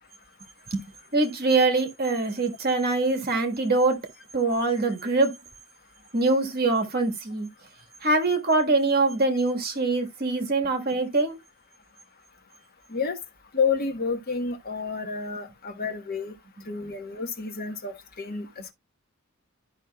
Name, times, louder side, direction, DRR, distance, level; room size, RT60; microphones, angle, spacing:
voice 1, 1.1-4.0 4.3-5.3 6.1-7.5 8.0-11.4, right 3 dB, 45° right, 1.4 m, -23 dB
voice 2, 13.5-16.3 16.7-18.5, left 5 dB, 45° left, 1.2 m, -29 dB
12.0 x 5.5 x 2.2 m
head